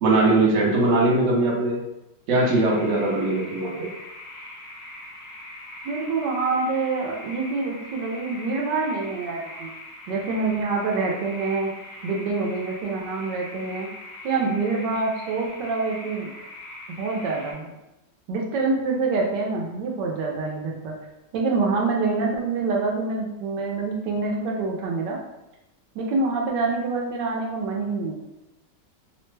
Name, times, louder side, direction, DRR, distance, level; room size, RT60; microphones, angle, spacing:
voice 1, 0.0-1.8 2.3-3.9, right 2 dB, 60° right, -3 dB, 0.8 m, -20 dB
sound 1, 2.4-17.5, left 1 dB, 60° left, 0.9 m, -42 dB
voice 2, 5.8-9.7 10.1-11.7 12.0-13.9 14.2-16.3 17.0-17.7 18.3-20.9 21.3-25.2 25.9-28.2, right 3 dB, 75° right, -1 dB, 1.2 m, -26 dB
3.1 x 2.1 x 3.1 m, 0.95 s
omnidirectional pair, 2.0 m